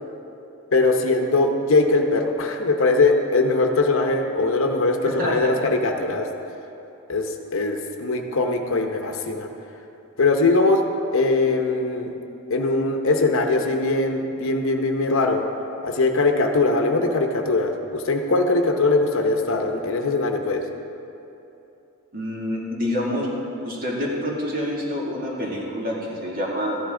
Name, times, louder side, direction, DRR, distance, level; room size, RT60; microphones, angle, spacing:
voice 1, 0.7-6.3 7.1-9.5 10.2-10.8 11.1-12.1 12.5-15.4 15.8-20.6, left 3 dB, 65° left, 4 dB, 0.8 m, -21 dB
voice 2, 22.1-23.3 23.6-26.8, left 1 dB, 45° right, -4 dB, 2.2 m, -27 dB
13.5 x 10.5 x 3.8 m, 2.9 s
head